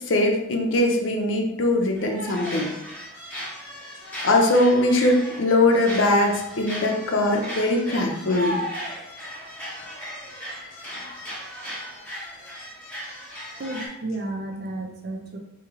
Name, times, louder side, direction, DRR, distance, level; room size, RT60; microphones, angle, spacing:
voice 1, 0.1-2.7 4.2-8.6, left 1 dB, 75° left, 2 dB, 0.6 m, -21 dB
sound 1, 2.0-13.9, equal, 10° left, 1.3 m, -36 dB
voice 2, 13.6-15.4, right 2 dB, 50° right, 3 dB, 0.5 m, -32 dB
3.1 x 2.8 x 3.6 m, 0.86 s
head